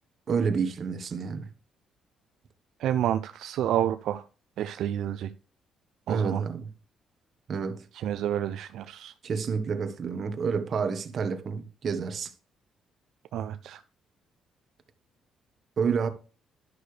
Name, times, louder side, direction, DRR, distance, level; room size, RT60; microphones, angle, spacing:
voice 1, 0.3-1.5 6.1-6.7 7.5-7.8 9.2-12.3 15.8-16.1, right 5 dB, 55° right, 1.1 m, -29 dB
voice 2, 2.8-4.2 4.6-5.3 6.1-6.4 7.9-9.1 13.3-13.8, right 11 dB, 80° right, 0.4 m, -29 dB
11.0 x 6.6 x 3.3 m
cardioid pair, 90°, 0 cm